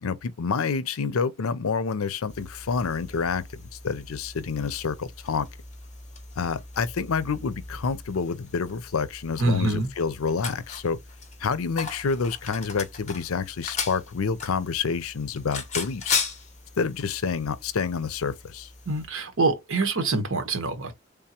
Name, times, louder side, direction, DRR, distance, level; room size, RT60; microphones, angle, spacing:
voice 1, 0.0-5.5 6.4-11.0 11.4-16.2 16.8-18.7, left 5 dB, 85° left, 0.5 m, -28 dB
sound 1, 2.3-19.1, left 5 dB, 35° left, 1.1 m, -37 dB
voice 2, 9.4-9.9 18.9-21.0, right 2 dB, 75° right, 1.1 m, -25 dB
3.6 x 3.5 x 2.9 m
head